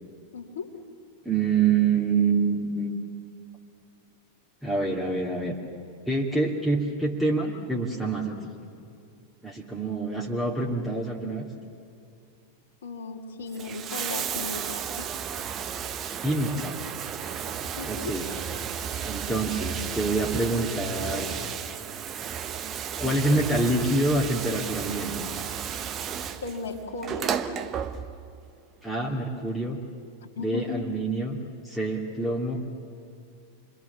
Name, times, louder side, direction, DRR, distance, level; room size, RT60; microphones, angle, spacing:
voice 1, 0.3-0.7 12.8-15.1 17.8-18.1 26.4-27.4 30.4-30.8, left 4 dB, 65° left, 0 dB, 2.3 m, -36 dB
voice 2, 1.2-2.9 4.6-5.6 6.1-8.4 9.4-11.5 16.2-16.8 17.8-18.3 19.0-21.4 23.0-25.1 28.8-29.8 30.4-31.4 31.6-32.7, right 3 dB, 5° right, -4 dB, 2.7 m, -26 dB
Bathtub (filling or washing), 13.4-28.4 29.5-29.6, right 8 dB, 30° right, 1.1 m, -33 dB
29.0 x 23.0 x 7.2 m, 2.4 s
figure-of-eight pair, 90°, 0 cm